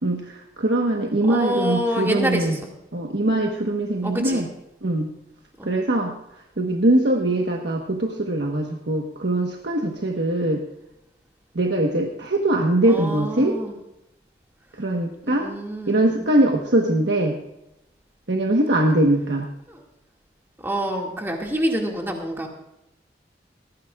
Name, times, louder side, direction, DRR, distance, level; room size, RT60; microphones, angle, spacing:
voice 1, 0.0-2.6 2.9-4.4 4.8-5.1 5.6-6.1 6.6-10.6 11.5-13.6 14.8-15.5 15.9-17.4 18.3-19.5, right 1 dB, 85° right, 1 dB, 1.3 m, -22 dB
voice 2, 1.3-2.6 4.0-4.4 5.6-5.8 12.8-13.7 15.2-16.2 19.7-19.8 20.6-22.5, equal, 15° right, 0 dB, 2.1 m, -27 dB
19.0 x 15.0 x 2.4 m, 0.88 s
head